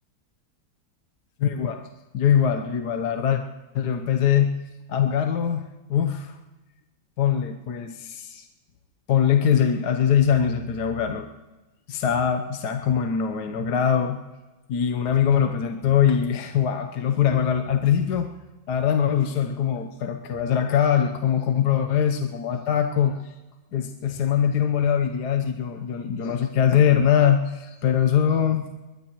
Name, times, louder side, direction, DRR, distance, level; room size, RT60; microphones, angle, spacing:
voice 1, 1.4-1.8 2.1-3.4 3.7-4.5 4.9-5.6 5.9-6.4 7.2-8.5 9.1-11.3 11.9-14.2 14.7-18.3 18.7-23.3 23.7-28.9, left 8 dB, 60° left, 6 dB, 1.3 m, -22 dB
22.0 x 21.0 x 3.1 m, 1.1 s
omnidirectional pair, 2.2 m